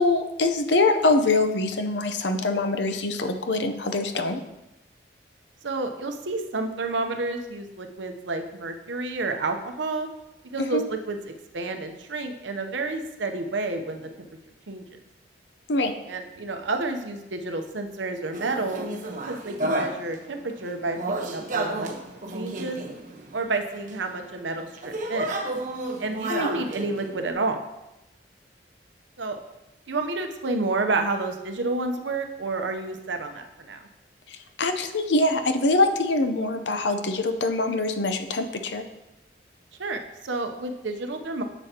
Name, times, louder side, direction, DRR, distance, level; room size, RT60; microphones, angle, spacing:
voice 1, 0.0-4.4 10.6-10.8 15.7-15.9 26.3-26.5 34.3-38.8, left 2 dB, 70° left, 7 dB, 0.7 m, -24 dB
voice 2, 5.6-10.1 10.5-14.1 14.7-14.8 16.1-18.9 19.3-21.9 22.3-22.8 23.3-25.3 26.0-27.6 29.2-29.4 29.9-33.9 39.8-41.4, right 3 dB, 80° right, 5 dB, 0.8 m, -30 dB
sound 1, 18.3-20.1 20.6-23.3 23.9-24.0 24.7-27.3, right 2 dB, 45° right, 1.0 m, -31 dB
10.0 x 7.1 x 2.9 m, 0.95 s
head